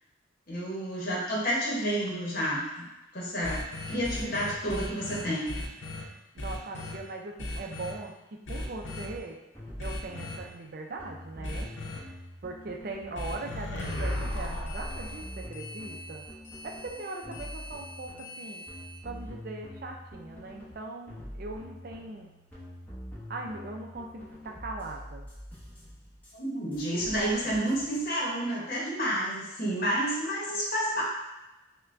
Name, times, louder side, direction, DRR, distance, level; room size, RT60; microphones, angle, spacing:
voice 1, 0.5-2.9 3.1-3.6 3.9-5.6 26.3-31.0, equal, 50° left, -4 dB, 1.0 m, -30 dB
sound 1, 3.4-6.0 6.4-7.0 7.4-7.9 8.5-9.1 9.8-10.4 11.4-12.0 13.1-19.0, left 1 dB, 75° left, 0.7 m, -37 dB
voice 2, 6.3-8.1 8.5-9.4 9.8-11.7 12.4-16.3 16.6-18.7 19.0-22.3 23.3-25.3, right 3 dB, 50° right, 2 dB, 0.4 m, -40 dB
sound 2, 8.5-9.2 9.5-13.0 13.4-16.9 17.2-20.7 21.1-26.3 26.7-28.1, equal, 10° left, 0.8 m, -45 dB
5.4 x 2.2 x 2.5 m, 1.0 s
head